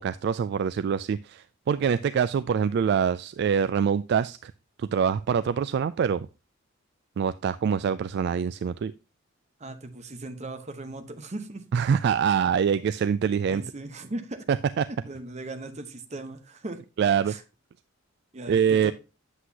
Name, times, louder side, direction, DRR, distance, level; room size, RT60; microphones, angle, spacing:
voice 1, 0.0-4.5 4.8-6.3 7.2-8.9 11.7-13.6 14.8-14.9 17.0-17.3 18.5-18.9, right 7 dB, 55° right, 0.3 m, -25 dB
voice 2, 9.6-11.6 13.5-14.5 14.9-16.8 17.3-17.4 18.3-18.9, right 2 dB, 35° right, 1.0 m, -38 dB
8.1 x 7.7 x 2.8 m
head